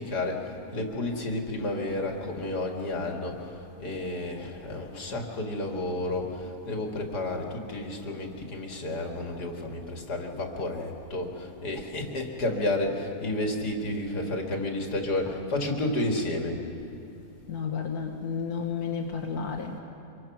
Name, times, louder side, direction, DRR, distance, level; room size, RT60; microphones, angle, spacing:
voice 1, 0.0-16.6, left 1 dB, 85° left, 1 dB, 2.8 m, -31 dB
voice 2, 17.5-19.8, left 6 dB, 70° left, 1 dB, 1.8 m, -32 dB
25.5 x 22.5 x 6.1 m, 2.9 s
omnidirectional pair, 1.7 m